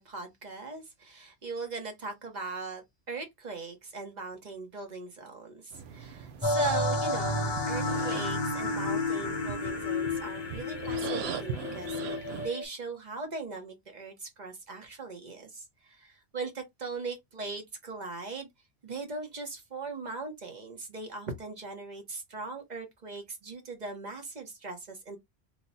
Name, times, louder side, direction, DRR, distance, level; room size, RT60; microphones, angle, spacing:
voice 1, 0.0-12.0 12.4-18.5 18.8-25.2, right 3 dB, 45° right, 1.0 m, -39 dB
sound 1, 5.7-12.5, right 7 dB, 70° right, 0.8 m, -41 dB
sound 2, 6.4-12.6, left 2 dB, 30° left, 0.5 m, -31 dB
3.0 x 2.2 x 3.9 m
omnidirectional pair, 1.1 m